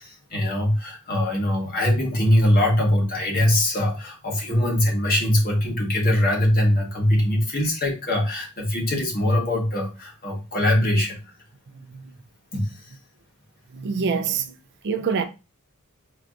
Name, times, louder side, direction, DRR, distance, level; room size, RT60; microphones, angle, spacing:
voice 1, 0.0-11.2 12.5-12.8, left 1 dB, 45° left, 1.2 m, -22 dB
voice 2, 13.7-14.5 14.8-15.2, right 6 dB, 50° right, 0.4 m, -25 dB
4.4 x 2.8 x 2.5 m
head